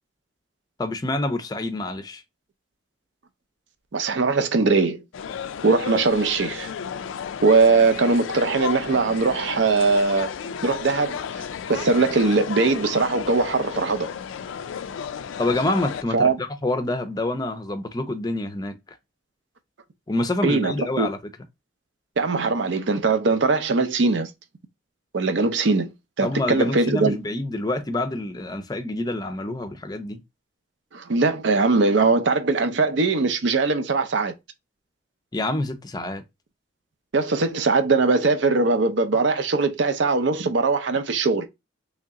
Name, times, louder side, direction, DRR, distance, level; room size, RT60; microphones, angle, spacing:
voice 1, 0.8-2.2 15.4-19.0 20.1-21.2 26.2-30.2 35.3-36.2, left 2 dB, 20° left, 0.5 m, -27 dB
voice 2, 3.9-5.0 5.6-6.7 7.4-10.3 10.6-11.4 11.7-14.1 16.1-16.4 20.4-21.1 22.2-24.3 25.1-27.2 30.9-34.3 37.1-41.5, right 3 dB, 70° right, 0.6 m, -21 dB
sound 1, 5.1-16.0, left 7 dB, 85° left, 0.3 m, -33 dB
3.2 x 2.8 x 3.6 m
head